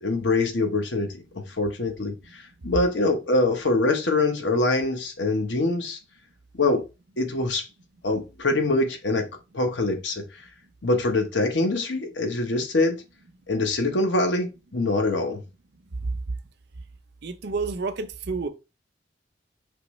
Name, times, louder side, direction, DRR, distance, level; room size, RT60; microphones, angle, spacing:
voice 1, 0.0-6.0 6.6-6.8 7.2-7.7 8.0-9.3 9.5-10.2 10.8-13.0 13.5-15.4, left 2 dB, 70° left, 1.0 m, -24 dB
voice 2, 17.2-18.5, right 4 dB, 60° right, 0.6 m, -29 dB
5.2 x 3.1 x 3.1 m
head